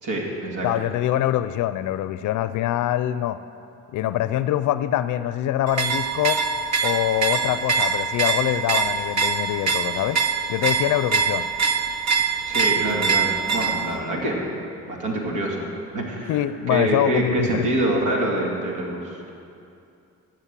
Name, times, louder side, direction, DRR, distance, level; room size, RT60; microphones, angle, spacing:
voice 1, 0.0-0.7 12.5-14.4 14.9-15.7 15.9-16.4 16.7-19.3, right 1 dB, 90° right, -1 dB, 2.2 m, -25 dB
voice 2, 0.6-3.4 3.9-6.4 6.8-10.2 10.5-11.4 16.3-17.7, left 12 dB, 80° left, 13 dB, 0.5 m, -24 dB
sound 1, 5.7-14.0, right 5 dB, 65° right, 0.9 m, -24 dB
13.0 x 7.5 x 7.4 m, 2.6 s
cardioid pair, 90°, 30 cm